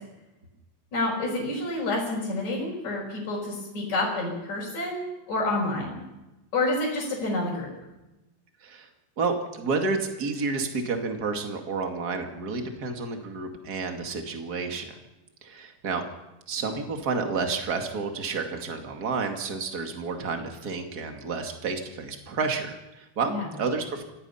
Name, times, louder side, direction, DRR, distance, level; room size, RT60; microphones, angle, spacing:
voice 1, 0.9-6.0 6.5-7.7 23.3-23.5, left 2 dB, 35° left, -5 dB, 6.2 m, -28 dB
voice 2, 9.2-15.0 15.4-16.0 16.5-24.0, right 4 dB, 40° right, 4 dB, 1.5 m, -30 dB
26.0 x 18.0 x 5.7 m, 0.99 s
omnidirectional pair, 5.4 m